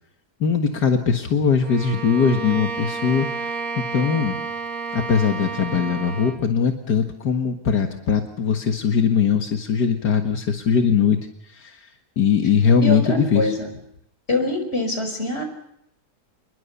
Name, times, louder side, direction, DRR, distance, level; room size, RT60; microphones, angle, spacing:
voice 1, 0.4-4.4 4.9-11.2 11.5-11.9 12.2-13.5, left 6 dB, 80° left, 4 dB, 2.2 m, -21 dB
Bowed string instrument, 1.6-6.5, right 4 dB, 60° right, 1.7 m, -31 dB
voice 2, 12.8-13.7 14.3-15.4, left 2 dB, 35° left, 6 dB, 5.4 m, -24 dB
28.0 x 21.5 x 6.9 m, 0.77 s
omnidirectional pair, 1.7 m